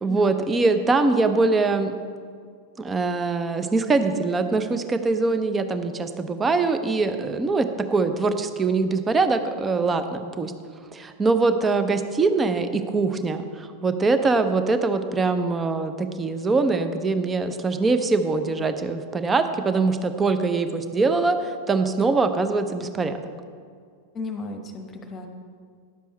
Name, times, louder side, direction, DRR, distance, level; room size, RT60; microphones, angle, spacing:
voice 1, 0.0-1.9 2.8-10.5 10.9-23.2, right 3 dB, 15° right, 9 dB, 0.6 m, -23 dB
voice 2, 24.1-25.3, left 3 dB, 20° left, 4 dB, 1.1 m, -34 dB
11.0 x 7.2 x 4.3 m, 2.1 s
figure-of-eight pair, 90°, 0 cm